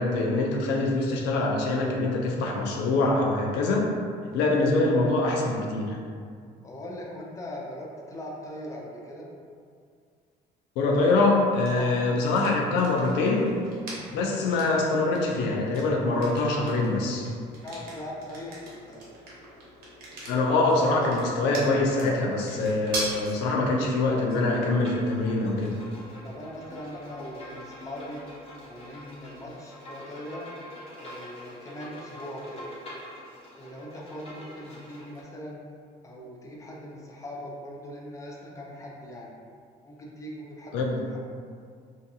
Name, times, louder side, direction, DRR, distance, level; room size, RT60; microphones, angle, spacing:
voice 1, 0.0-3.9 4.3-6.0 10.8-13.5 14.1-17.3 20.3-25.8 40.7-41.0, left 2 dB, 90° left, -1 dB, 0.4 m, -24 dB
voice 2, 6.6-9.3 11.7-11.9 17.6-19.1 26.2-28.2 28.6-30.5 31.0-32.7 33.5-35.6 36.0-39.3 39.8-41.2, left 1 dB, 20° left, -3 dB, 0.5 m, -40 dB
sound 1, 11.6-29.3, right 1 dB, 65° right, 0.8 m, -43 dB
Bowed string instrument, 24.7-35.2, equal, 35° left, 0.9 m, -44 dB
2.5 x 2.3 x 2.7 m, 2.2 s
cardioid pair, 110°, 17 cm